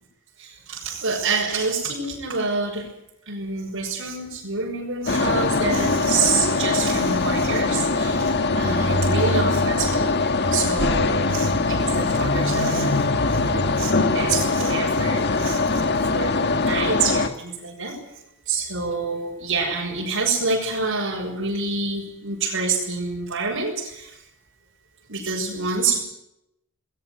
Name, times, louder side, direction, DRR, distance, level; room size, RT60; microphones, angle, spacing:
voice 1, 0.4-2.9 3.3-13.0 13.4-15.8 16.1-18.0 18.5-24.1 25.1-26.0, right 4 dB, 65° right, -2 dB, 5.7 m, -27 dB
sound 1, 5.1-17.3, left 3 dB, 55° left, 1.7 m, -22 dB
20.0 x 19.0 x 9.3 m, 0.84 s
head